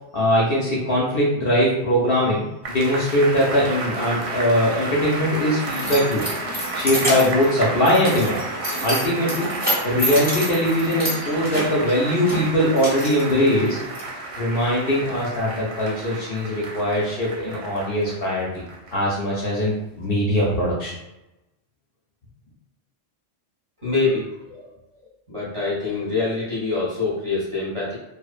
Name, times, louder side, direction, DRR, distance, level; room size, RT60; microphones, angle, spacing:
voice 1, 0.1-6.2 6.7-8.4 8.8-9.5 9.8-13.8 14.4-18.6 18.9-20.9, equal, 60° left, -5 dB, 0.6 m, -21 dB
sound 1, 2.6-19.2 19.6-19.7, right 3 dB, 65° right, 0.8 m, -32 dB
Keys jangling, 5.0-14.0, equal, 10° right, 0.9 m, -29 dB
voice 2, 23.8-24.7 25.3-28.0, left 3 dB, 35° right, -9 dB, 0.6 m, -25 dB
2.5 x 2.1 x 2.4 m, 0.97 s
omnidirectional pair, 1.3 m